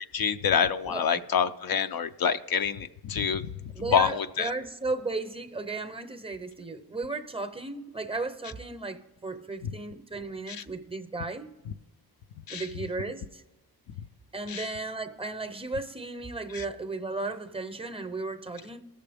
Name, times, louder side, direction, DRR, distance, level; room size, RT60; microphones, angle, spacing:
voice 1, 0.0-3.5 3.9-4.5 10.5-10.6 12.5-12.7 14.5-14.7 16.5-16.6, left 7 dB, 65° left, 0.5 m, -27 dB
voice 2, 3.7-11.5 12.5-13.4 14.3-18.8, right 3 dB, 15° right, 0.6 m, -35 dB
17.5 x 6.8 x 3.4 m
wide cardioid pair, 120°, 38 cm